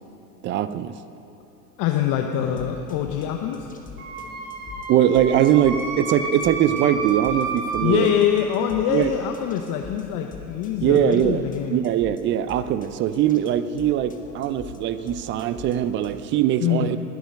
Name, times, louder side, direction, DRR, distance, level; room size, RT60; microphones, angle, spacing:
voice 1, 0.4-1.0 4.9-8.1 8.9-9.1 10.8-11.4 11.7-17.0, right 10 dB, 25° right, 13 dB, 0.5 m, -21 dB
voice 2, 1.8-3.7 7.8-11.8 16.6-16.9, left 10 dB, 40° left, 4 dB, 0.9 m, -24 dB
sound 1, 2.4-16.2, left 5 dB, 15° left, 1.3 m, -44 dB
Wind instrument woodwind instrument, 4.0-8.1, right 4 dB, 45° right, 2.5 m, -31 dB
20.5 x 7.2 x 5.4 m, 3.0 s
figure-of-eight pair, 80°, 48 cm